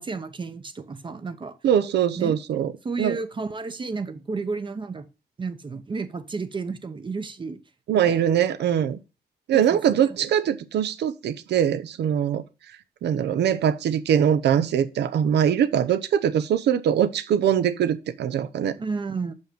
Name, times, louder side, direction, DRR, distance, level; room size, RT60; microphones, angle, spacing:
voice 1, 0.0-1.6 2.2-2.4 2.8-5.0 5.4-7.6 7.9-8.3 9.5-10.0 18.8-19.3, right 4 dB, 30° right, 0.7 m, -32 dB
voice 2, 1.6-2.7 3.0-3.2 7.9-9.0 9.5-12.4 13.0-18.7, right 9 dB, 90° right, 0.7 m, -22 dB
6.4 x 5.4 x 5.1 m
cardioid pair, 125°, 17 cm